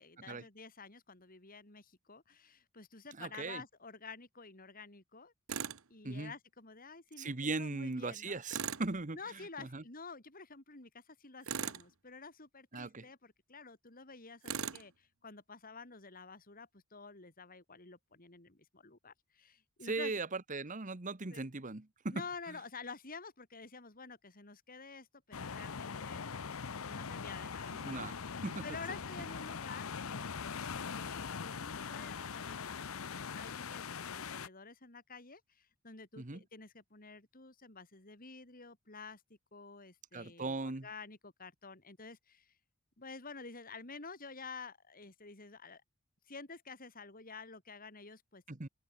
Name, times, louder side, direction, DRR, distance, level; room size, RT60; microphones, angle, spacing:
voice 1, 0.0-5.3 5.9-8.4 9.1-20.1 21.3-21.5 22.1-26.3 26.8-32.8 33.1-33.8 34.1-39.2 39.5-42.5 43.0-45.8 46.3-48.4, left 4 dB, 40° left, 3.5 m, -50 dB
voice 2, 3.2-3.6 6.0-6.3 7.2-9.8 12.7-13.1 19.8-22.2 27.8-28.1 28.4-28.6 36.2-36.4 40.1-40.9 48.5-48.7, right 3 dB, 35° right, 1.2 m, -39 dB
Tools, 5.5-5.8 8.5-8.9 11.4-11.9 14.4-14.9, right 7 dB, 80° right, 1.3 m, -38 dB
sound 1, 25.3-34.5, left 6 dB, 75° left, 0.8 m, -42 dB
open air
head